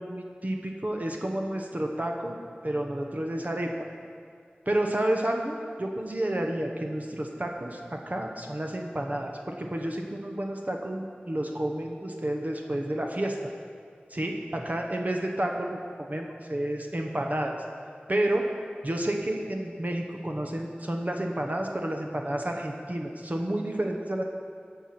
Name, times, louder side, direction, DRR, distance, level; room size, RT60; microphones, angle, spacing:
voice 1, 0.0-2.4 2.6-3.7 4.7-13.4 14.1-17.5 18.1-18.5 18.8-24.2, right 1 dB, 45° right, 2 dB, 1.0 m, -30 dB
16.5 x 5.7 x 5.8 m, 2.2 s
wide cardioid pair, 45°, 4 cm